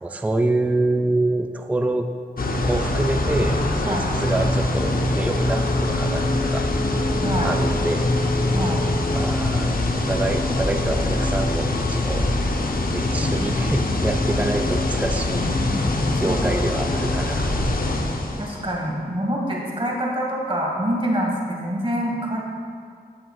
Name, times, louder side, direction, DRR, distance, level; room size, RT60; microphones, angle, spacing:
voice 1, 0.0-2.1 2.6-6.7 7.4-8.1 9.1-12.3 12.9-15.5 16.2-18.0, right 2 dB, 10° right, 5 dB, 0.4 m, -26 dB
sound 1, 2.4-18.7, left 2 dB, 55° left, 0.6 m, -23 dB
Wind instrument woodwind instrument, 5.1-9.3, left 1 dB, 60° right, 1.0 m, -32 dB
voice 2, 7.2-7.5 8.5-8.9 16.2-16.7 18.4-22.4, equal, 30° right, -2 dB, 1.5 m, -26 dB
8.8 x 7.6 x 2.3 m, 2.2 s
wide cardioid pair, 55°, 18 cm